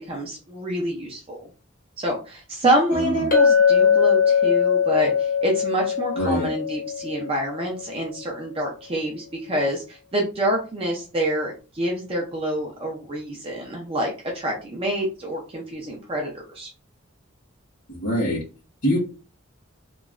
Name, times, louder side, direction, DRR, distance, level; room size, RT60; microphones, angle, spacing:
voice 1, 0.1-1.5 2.0-16.7, right 1 dB, 25° right, -1 dB, 0.5 m, -27 dB
voice 2, 2.9-3.3 6.1-6.5 17.9-18.4 18.8-19.0, equal, 60° left, -5 dB, 1.3 m, -24 dB
Chink clink, 3.3-7.8, left 7 dB, 40° left, 0.9 m, -20 dB
3.0 x 2.2 x 2.4 m, 0.34 s
head